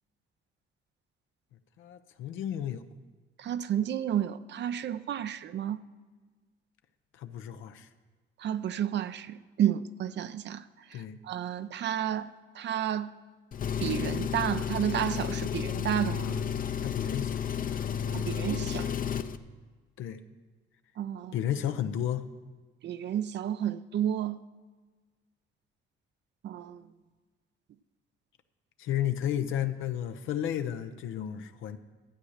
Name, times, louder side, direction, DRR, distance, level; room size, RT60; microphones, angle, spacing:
voice 1, 1.8-2.8 7.2-7.9 10.9-11.2 16.1-16.4 16.8-17.4 20.0-20.2 21.3-22.3 28.8-31.8, left 10 dB, 85° left, 0.7 m, -33 dB
voice 2, 3.4-5.8 8.4-13.1 13.8-16.2 18.1-18.9 21.0-21.4 22.8-24.4 26.4-26.8, right 10 dB, 60° right, 0.6 m, -31 dB
Engine, 13.5-19.4, left 8 dB, 45° left, 0.6 m, -32 dB
12.5 x 8.7 x 6.5 m
cardioid pair, 90°, 20 cm